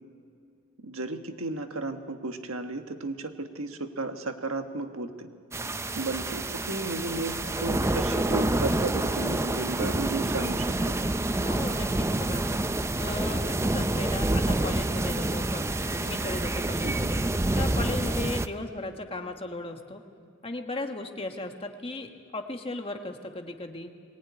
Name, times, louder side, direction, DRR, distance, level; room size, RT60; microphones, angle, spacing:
voice 1, 0.8-5.3 6.0-10.9 16.8-17.1, right 2 dB, 70° right, 6 dB, 1.5 m, -34 dB
sound 1, 5.5-18.5, right 2 dB, 10° right, 0.5 m, -28 dB
voice 2, 11.4-12.4 13.0-17.2 17.5-20.0 20.4-23.9, left 2 dB, 25° left, 5 dB, 1.4 m, -36 dB
21.5 x 18.5 x 9.5 m, 2.3 s
head